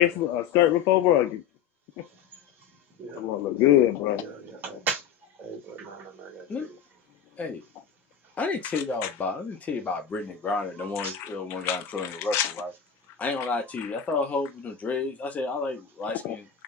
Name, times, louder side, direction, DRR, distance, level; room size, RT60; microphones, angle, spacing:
voice 1, 0.0-1.4 3.2-4.2 9.0-9.1 11.0-11.3 11.6-12.5 16.2-16.4, left 13 dB, 50° left, 0.3 m, -23 dB
voice 2, 4.1-5.0 5.4-6.8 10.8-11.1, right 4 dB, 35° right, 1.9 m, -36 dB
voice 3, 8.4-12.7 13.2-16.5, left 3 dB, 25° left, 1.0 m, -31 dB
3.7 x 3.3 x 2.6 m
figure-of-eight pair, 70°, 6 cm